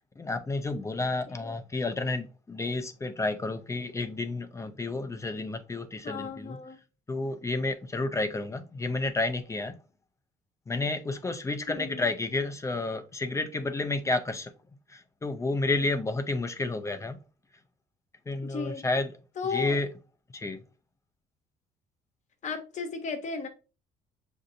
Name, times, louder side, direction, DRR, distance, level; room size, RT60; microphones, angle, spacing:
voice 1, 0.2-6.6 7.1-9.8 10.7-14.5 14.9-17.2 18.3-19.1 19.5-19.9 20.3-20.6, left 2 dB, 15° left, 0.4 m, -31 dB
voice 2, 6.0-6.8 11.7-12.1 18.4-18.8 19.4-19.8 22.4-23.5, left 5 dB, 45° left, 0.9 m, -35 dB
6.4 x 2.7 x 2.5 m
cardioid pair, 110°, 17 cm